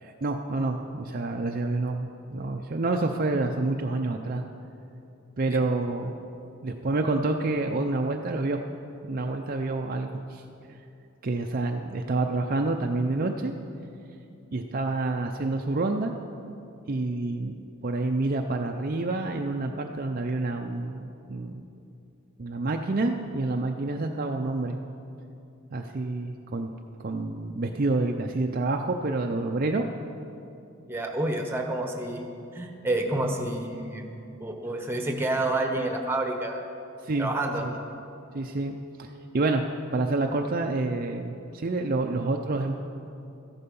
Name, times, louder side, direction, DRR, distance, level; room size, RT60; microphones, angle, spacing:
voice 1, 0.0-4.4 5.4-6.2 6.6-8.6 9.0-10.4 11.2-13.5 14.5-16.1 16.9-17.5 17.8-21.5 22.4-24.8 25.7-26.7 27.0-29.9 37.0-37.3 37.6-37.7 38.3-39.6 39.9-42.8, right 2 dB, 40° right, 3 dB, 0.5 m, -28 dB
voice 2, 30.9-32.2 32.5-34.0 34.4-36.6 37.2-37.7, right 2 dB, 10° right, 3 dB, 1.1 m, -29 dB
14.0 x 11.0 x 5.4 m, 2.7 s
head